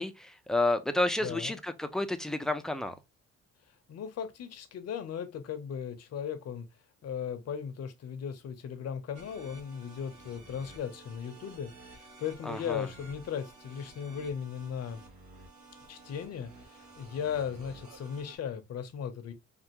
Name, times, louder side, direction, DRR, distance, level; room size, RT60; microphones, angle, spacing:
voice 1, 0.0-2.9 12.5-12.9, left 2 dB, ahead, 0.5 m, -30 dB
voice 2, 1.2-1.6 3.9-6.7 7.0-15.0 15.9-19.3, left 7 dB, 55° left, 0.8 m, -37 dB
sound 1, 9.1-18.4, right 3 dB, 80° right, 1.5 m, -52 dB
3.4 x 2.4 x 2.9 m
cardioid pair, 90°, 30 cm